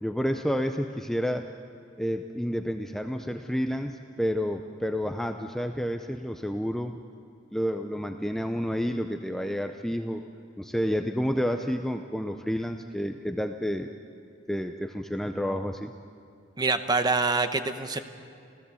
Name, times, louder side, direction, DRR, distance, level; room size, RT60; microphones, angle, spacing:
voice 1, 0.0-1.5 2.0-7.0 7.5-10.2 10.6-13.9 14.5-15.9, equal, ahead, 5 dB, 0.5 m, -30 dB
voice 2, 16.6-18.0, right 3 dB, 20° right, 9 dB, 0.9 m, -25 dB
27.5 x 16.0 x 7.1 m, 2.4 s
head